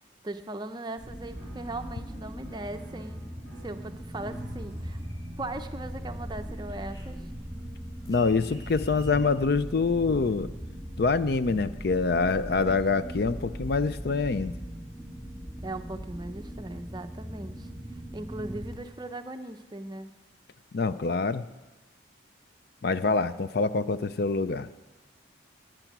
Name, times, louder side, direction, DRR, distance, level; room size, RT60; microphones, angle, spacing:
voice 1, 0.2-3.3 3.6-5.0 5.4-7.2 15.6-17.7 18.1-20.1, right 2 dB, 20° right, 8 dB, 0.6 m, -38 dB
sound 1, 1.0-18.7, equal, ahead, 3.0 m, -39 dB
Piano, 1.3-9.8, right 1 dB, 75° left, 5.1 m, -55 dB
sound 2, 4.1-5.5 5.8-9.2, left 1 dB, 20° left, 1.6 m, -52 dB
voice 2, 8.1-10.5 11.0-14.5 20.7-21.4 22.8-24.7, left 4 dB, 55° left, 13 dB, 0.5 m, -25 dB
19.5 x 9.0 x 6.0 m, 1.1 s
head